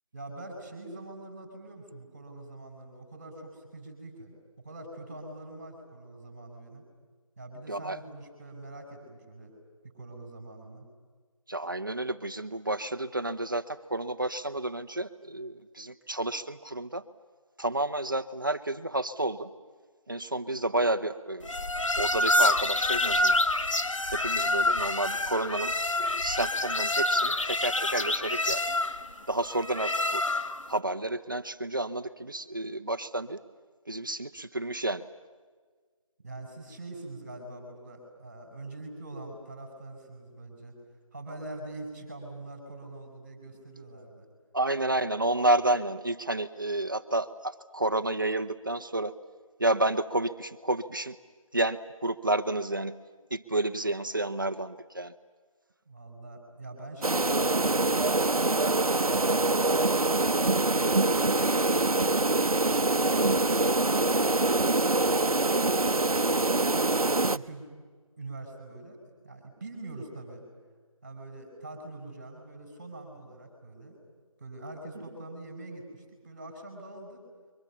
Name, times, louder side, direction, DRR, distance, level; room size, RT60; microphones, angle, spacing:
voice 1, 0.1-4.3 4.6-6.8 7.4-9.5 9.8-10.9 36.2-40.8 41.1-44.3 55.9-59.7 60.6-66.2 66.5-67.7 68.2-69.0 69.2-70.4 71.0-74.0 74.4-77.2, right 2 dB, 20° right, 4 dB, 4.6 m, -44 dB
voice 2, 7.7-8.0 11.5-17.0 17.6-19.5 20.1-21.5 22.0-23.4 24.1-28.6 29.3-30.2 30.7-33.4 33.9-35.1 44.5-49.2 49.6-51.2 51.5-53.0 53.3-55.1 60.3-60.6, right 2 dB, 35° right, 10 dB, 0.9 m, -30 dB
sound 1, 21.4-30.7, left 1 dB, 60° left, 1.1 m, -27 dB
sound 2, 57.0-67.4, right 2 dB, 85° right, 0.8 m, -24 dB
29.5 x 23.5 x 7.1 m, 1.5 s
figure-of-eight pair, 175°, 18 cm